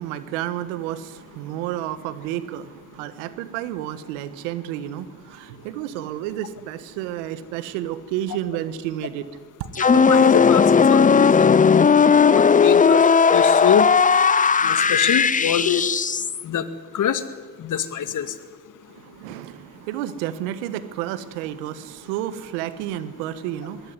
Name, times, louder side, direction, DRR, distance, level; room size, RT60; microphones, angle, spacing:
voice 1, 0.0-9.3 9.6-9.7 18.9-23.9, right 12 dB, 85° right, 14 dB, 1.4 m, -31 dB
sound 1, 9.7-16.4, left 6 dB, 20° left, 0.7 m, -16 dB
voice 2, 9.8-10.6 10.9-11.5 12.3-13.0 13.3-13.9 14.6-15.8 16.4-16.6 16.9-17.2 17.6-18.3, left 9 dB, 55° left, 12 dB, 2.1 m, -24 dB
21.5 x 16.5 x 9.7 m, 1.5 s
hypercardioid pair, 65°, 37 cm